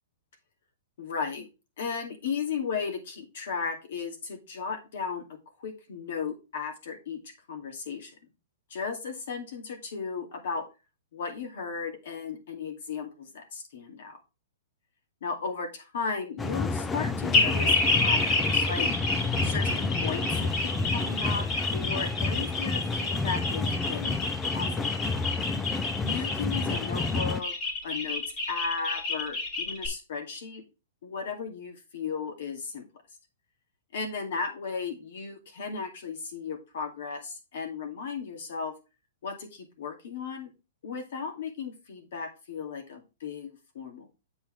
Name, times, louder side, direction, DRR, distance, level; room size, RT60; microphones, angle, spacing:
voice 1, 1.0-1.5 1.8-5.2 5.6-7.2 7.5-8.1 8.7-10.6 11.1-14.2 15.2-18.9 19.4-21.5 21.7-24.7 26.0-27.5 27.8-30.6 31.0-32.9 33.9-38.7 39.2-40.5 40.8-44.1, left 5 dB, 65° left, 3 dB, 2.4 m, -35 dB
sound 1, 16.4-27.4, left 3 dB, 10° left, 0.4 m, -30 dB
sound 2, 17.3-29.9, left 3 dB, 30° left, 2.3 m, -29 dB
7.9 x 5.8 x 3.3 m, 0.29 s
hypercardioid pair, 155°, 0 cm